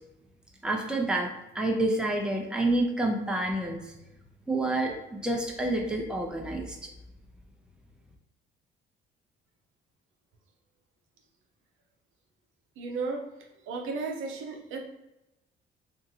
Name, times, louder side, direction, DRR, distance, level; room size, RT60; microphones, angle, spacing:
voice 1, 0.6-3.8 4.5-6.9, right 2 dB, 5° right, 0 dB, 0.5 m, -28 dB
voice 2, 12.8-13.2 13.7-14.8, right 4 dB, 85° right, 1 dB, 0.6 m, -34 dB
2.8 x 2.5 x 2.7 m, 0.93 s
cardioid pair, 90°, 20 cm